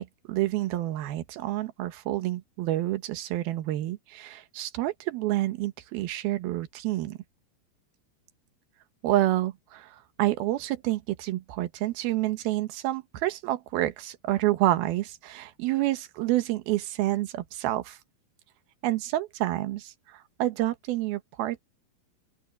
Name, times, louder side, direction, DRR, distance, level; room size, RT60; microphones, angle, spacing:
voice 1, 0.0-7.2 9.0-9.9 10.2-18.0 18.8-21.6, right 15 dB, 80° right, 3.0 m, -28 dB
open air
omnidirectional pair, 4.3 m